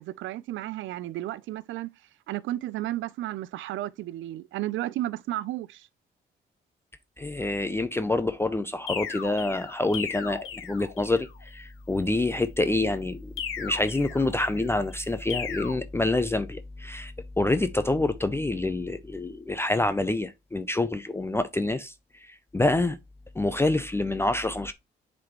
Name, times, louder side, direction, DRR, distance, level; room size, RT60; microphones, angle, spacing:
voice 1, 0.0-1.9 2.3-5.9, right 14 dB, 75° right, 0.4 m, -33 dB
voice 2, 7.2-23.0 23.3-24.7, left 2 dB, 10° left, 0.5 m, -27 dB
sound 1, 8.9-11.3 13.4-14.7 15.3-15.7, left 7 dB, 85° left, 1.5 m, -36 dB
7.4 x 4.2 x 3.0 m
cardioid pair, 90°, 20 cm